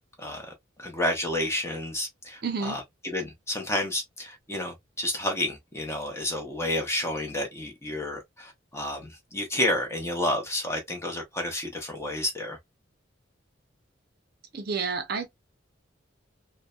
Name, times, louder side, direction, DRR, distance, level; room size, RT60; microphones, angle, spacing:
voice 1, 0.2-0.5 0.8-12.6, left 1 dB, 15° left, 0.7 m, -30 dB
voice 2, 2.4-2.8 14.5-15.3, right 5 dB, 55° right, 0.5 m, -30 dB
2.6 x 2.1 x 2.2 m
head